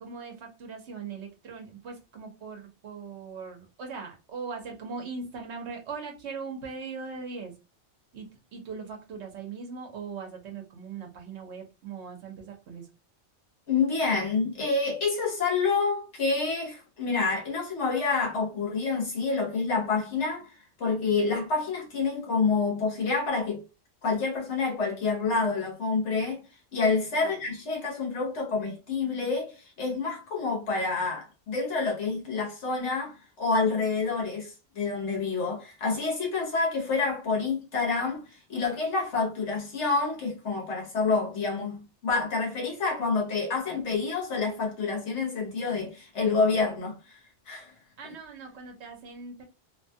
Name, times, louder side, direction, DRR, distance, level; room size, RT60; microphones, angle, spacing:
voice 1, 0.0-7.5 8.1-8.3 8.5-12.8 27.1-27.3 48.0-49.4, right 5 dB, 75° right, 1.0 m, -40 dB
voice 2, 13.7-20.5 20.8-23.6 24.0-26.4 26.7-29.5 29.8-38.2 38.5-47.2 47.5-47.7 48.0-48.1, left 4 dB, 85° left, 1.3 m, -28 dB
2.9 x 2.2 x 2.7 m
omnidirectional pair, 1.2 m